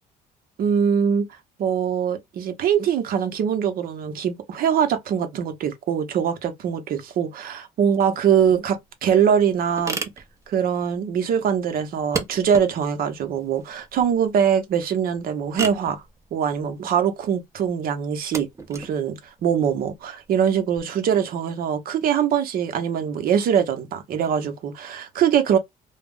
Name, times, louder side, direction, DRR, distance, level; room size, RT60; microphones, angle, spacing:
voice 1, 0.6-1.3 1.6-10.0 10.5-16.0 16.3-25.6, right 8 dB, 60° right, 0.7 m, -23 dB
sound 1, 8.4-20.8, right 4 dB, 20° right, 0.6 m, -37 dB
2.3 x 2.0 x 3.6 m
cardioid pair, 110°, 17 cm